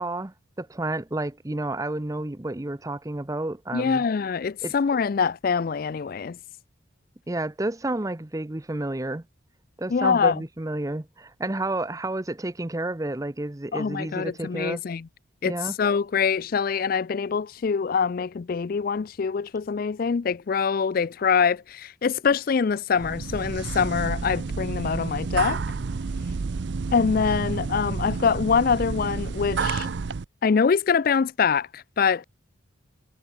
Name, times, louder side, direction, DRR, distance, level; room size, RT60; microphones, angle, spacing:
voice 1, 0.0-4.0 4.6-4.7 7.3-9.2 9.8-14.8 15.4-15.8, right 2 dB, 15° right, 0.6 m, -30 dB
voice 2, 3.7-6.4 9.9-10.4 13.7-15.1 15.4-25.6 26.9-29.9 30.4-32.2, left 6 dB, 45° left, 0.4 m, -24 dB
sound 1, 23.0-30.3, right 4 dB, 60° right, 0.5 m, -30 dB
head